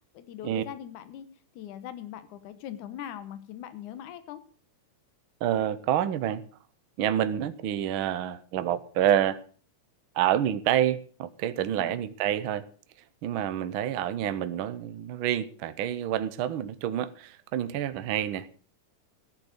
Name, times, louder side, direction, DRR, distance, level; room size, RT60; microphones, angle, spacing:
voice 1, 0.1-1.3 1.6-4.4 11.7-12.0, left 10 dB, 80° left, 2.6 m, -41 dB
voice 2, 5.4-6.4 7.0-9.4 10.1-12.7 13.2-18.5, right 10 dB, 80° right, 1.1 m, -28 dB
15.0 x 9.0 x 6.6 m
omnidirectional pair, 3.6 m